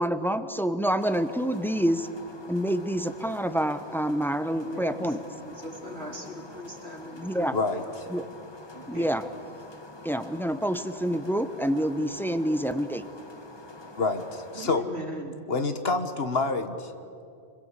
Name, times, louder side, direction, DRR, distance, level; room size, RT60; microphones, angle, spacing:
voice 1, 0.0-2.1 2.5-5.2 7.2-7.6 8.1-8.3 8.9-9.2 10.0-13.0, equal, ahead, 9 dB, 0.9 m, -27 dB
sound 1, 1.0-14.6, left 2 dB, 25° left, 1.3 m, -46 dB
voice 2, 4.6-8.1 8.7-9.1 14.5-15.4, equal, 75° right, 1 dB, 3.7 m, -39 dB
voice 3, 7.5-7.8 14.0-14.8 15.5-16.9, left 3 dB, 65° left, 7 dB, 1.6 m, -27 dB
27.5 x 21.5 x 8.3 m, 2.5 s
omnidirectional pair, 1.1 m